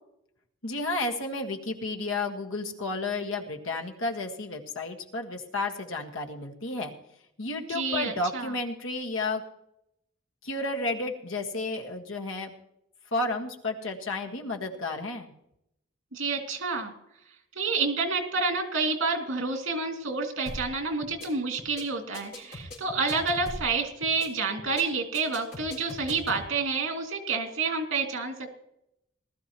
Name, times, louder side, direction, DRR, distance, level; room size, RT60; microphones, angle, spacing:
voice 1, 0.6-6.9 7.4-9.4 10.4-12.5 13.1-15.3, left 2 dB, 85° left, 2 dB, 1.7 m, -32 dB
voice 2, 7.7-8.5 16.1-16.9 17.6-28.3, right 4 dB, 85° right, 3 dB, 2.6 m, -29 dB
sound 1, 20.5-20.7 21.0-21.3 21.6-21.8 22.1-23.7 24.0-24.3 24.6-24.8 25.1-26.4, left 1 dB, 45° left, 4.4 m, -40 dB
19.0 x 13.0 x 3.1 m, 0.79 s
head